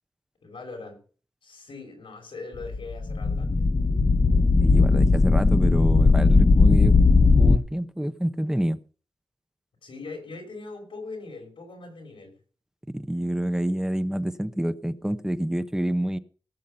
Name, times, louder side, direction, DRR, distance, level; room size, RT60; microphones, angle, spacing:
voice 1, 0.4-1.0 1.4-3.7 9.8-12.3, left 3 dB, 85° left, 2 dB, 5.9 m, -40 dB
sound 1, 2.6-7.6, left 3 dB, 40° left, 0.9 m, -18 dB
voice 2, 4.6-6.9 7.3-8.8 12.9-16.2, right 1 dB, 5° right, 12 dB, 0.9 m, -27 dB
18.0 x 7.4 x 5.4 m, 0.39 s
cardioid pair, 50°, 9 cm